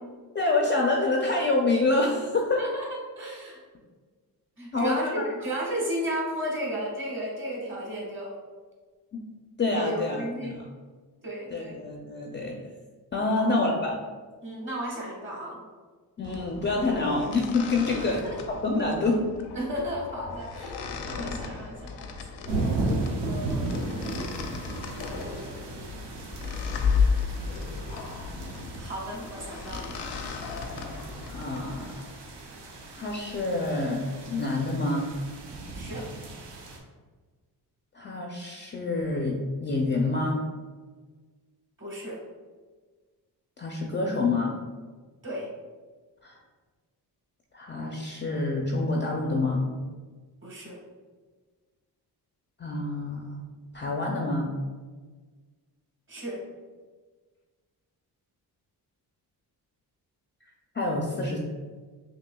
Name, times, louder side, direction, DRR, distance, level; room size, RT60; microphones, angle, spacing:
voice 1, 0.3-2.6 4.7-5.2 9.6-10.6 11.5-12.5 13.1-13.9 16.2-18.2 18.5-19.5 30.6-31.0 31.3-31.9 33.0-35.1 37.9-40.4 43.6-44.5 46.2-46.4 47.5-49.6 52.6-53.4 53.7-54.5 60.7-61.4, left 2 dB, 30° left, 0 dB, 0.4 m, -27 dB
voice 2, 2.6-3.6 4.6-8.4 9.8-10.6 11.2-11.8 13.3-13.5 14.4-15.6 18.0-18.4 19.5-22.4 23.2-23.7 25.0-26.1 28.8-29.9 35.7-36.1 41.8-42.2 45.2-45.5 50.4-50.8 56.1-56.4, equal, 30° right, -3 dB, 1.2 m, -34 dB
sound 1, 16.2-32.1, left 5 dB, 75° left, 0.6 m, -34 dB
sound 2, 22.5-36.8, right 2 dB, 80° right, 0.8 m, -35 dB
5.9 x 2.7 x 2.2 m, 1.4 s
cardioid pair, 130°, 40 cm